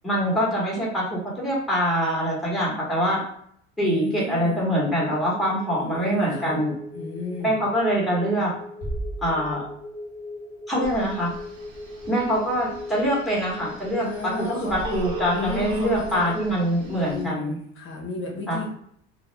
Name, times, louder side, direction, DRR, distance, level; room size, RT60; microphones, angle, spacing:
voice 1, 0.0-3.2 3.8-6.7 7.4-8.5 9.2-9.7 10.7-11.3 12.1-17.6 18.5-18.6, equal, ahead, -4 dB, 0.9 m, -24 dB
voice 2, 3.8-4.7 5.7-6.6 6.9-7.6 14.0-14.9 15.3-16.3 17.0-18.7, left 3 dB, 40° left, -1 dB, 0.6 m, -33 dB
sound 1, 4.7-16.7, left 2 dB, 25° left, 1.1 m, -40 dB
Bass drum, 8.8-10.2, right 1 dB, 30° right, 1.2 m, -34 dB
Telephone, 10.8-17.2, right 2 dB, 70° right, 0.9 m, -39 dB
2.2 x 2.1 x 2.9 m, 0.66 s
cardioid pair, 125°, 32 cm